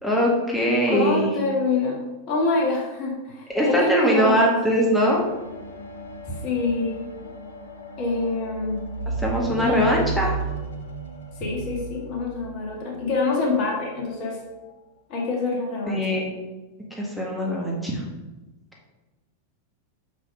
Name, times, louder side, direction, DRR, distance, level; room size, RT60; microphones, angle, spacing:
voice 1, 0.0-1.3 3.5-5.2 9.2-10.3 15.9-16.3 16.9-18.0, equal, 5° left, -3 dB, 1.9 m, -21 dB
voice 2, 0.9-2.0 2.3-4.6 6.4-7.0 8.0-8.9 9.6-10.0 11.4-14.4 15.1-16.2, left 3 dB, 40° left, -1 dB, 1.8 m, -25 dB
sound 1, 4.4-13.9 14.7-14.8, right 3 dB, 70° left, 1.0 m, -34 dB
6.3 x 6.1 x 4.7 m, 1.1 s
figure-of-eight pair, 90°, 0 cm